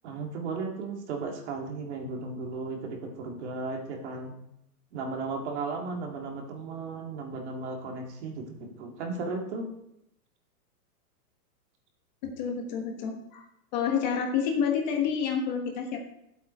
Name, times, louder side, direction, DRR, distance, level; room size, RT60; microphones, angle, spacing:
voice 1, 0.0-4.4 4.9-9.7, right 3 dB, 45° right, 2 dB, 2.2 m, -35 dB
voice 2, 12.2-13.4 13.7-16.0, left 7 dB, 30° left, 2 dB, 1.2 m, -29 dB
12.5 x 8.1 x 4.3 m, 0.79 s
supercardioid pair, 175°, 46 cm